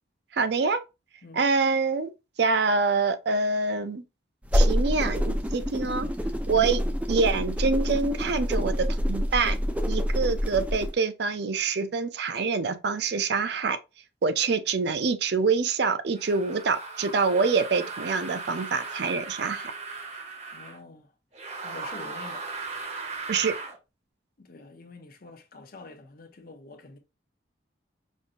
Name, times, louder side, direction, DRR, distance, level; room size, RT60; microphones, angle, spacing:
voice 1, 0.3-0.8 1.3-2.1 2.4-4.0 4.5-6.1 6.5-6.8 7.1-9.6 9.9-13.8 14.2-19.7 23.3-23.5, right 4 dB, 65° right, 0.5 m, -26 dB
sound 1, 4.4-10.9, equal, 10° right, 0.4 m, -26 dB
sound 2, 16.2-20.8 21.3-23.8, right 4 dB, 40° right, 1.0 m, -37 dB
voice 2, 20.5-21.1 21.6-22.5 24.4-27.0, left 3 dB, 55° left, 0.7 m, -45 dB
5.3 x 2.6 x 2.5 m
head